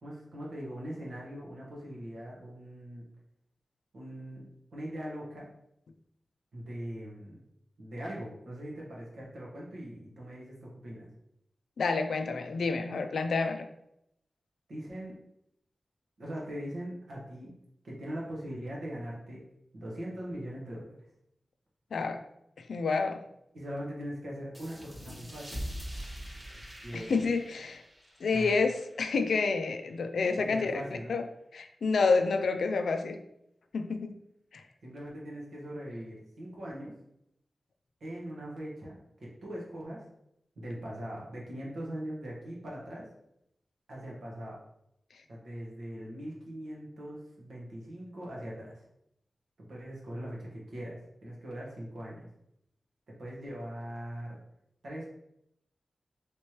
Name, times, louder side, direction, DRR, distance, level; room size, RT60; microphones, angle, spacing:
voice 1, 0.0-3.1 3.9-4.4 4.7-5.5 6.5-7.4 7.8-11.1 14.7-15.2 16.2-17.5 17.8-19.4 19.7-21.0 23.5-26.0 26.8-27.1 28.3-28.6 30.3-31.2 34.8-36.9 38.0-40.1 40.6-43.1 43.9-44.6 45.3-48.8 49.6-52.3 53.1-54.4 54.8-55.1, equal, 85° right, -4 dB, 1.1 m, -41 dB
voice 2, 11.8-13.6 21.9-22.2 22.7-23.2 26.9-27.8 28.2-30.7 31.1-31.2 31.5-33.2 33.7-34.2 34.5-34.6, left 4 dB, 90° left, 7 dB, 0.3 m, -28 dB
sound 1, 24.5-29.8, equal, 30° right, 1.1 m, -44 dB
3.2 x 3.1 x 2.9 m, 0.79 s
cardioid pair, 45°, 0 cm